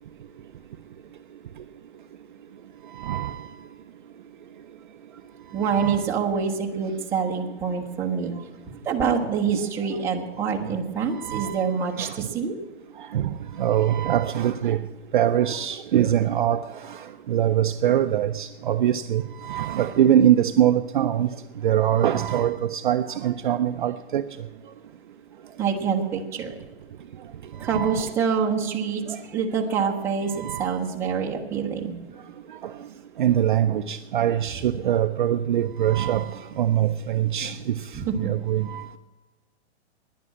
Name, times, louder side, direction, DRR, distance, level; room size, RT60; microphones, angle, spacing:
voice 1, 3.0-3.5 5.7-6.1 11.2-11.7 12.0-12.3 13.1-14.8 15.1-17.0 17.3-21.3 21.6-24.2 27.6-28.1 29.1-29.2 30.3-30.7 33.2-37.8 38.2-38.9, right 11 dB, 45° right, 0.5 m, -23 dB
voice 2, 5.5-8.4 8.8-12.5 25.6-26.5 27.6-29.0 29.3-32.0 37.9-38.3, right 6 dB, 5° right, 0.9 m, -26 dB
11.0 x 10.5 x 8.5 m
hypercardioid pair, 170°, 35 cm